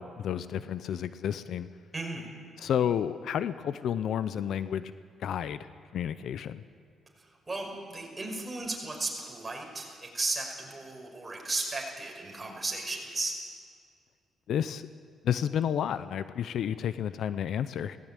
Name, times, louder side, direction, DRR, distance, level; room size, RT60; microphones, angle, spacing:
voice 1, 0.0-1.7 2.6-4.9 5.2-5.7 5.9-6.6 14.5-14.8 15.2-18.0, left 9 dB, 70° left, 14 dB, 0.6 m, -31 dB
voice 2, 1.9-2.3 7.2-13.4, right 2 dB, 20° right, 0 dB, 5.6 m, -35 dB
18.0 x 16.5 x 9.1 m, 2.2 s
cardioid pair, 90°, 0 cm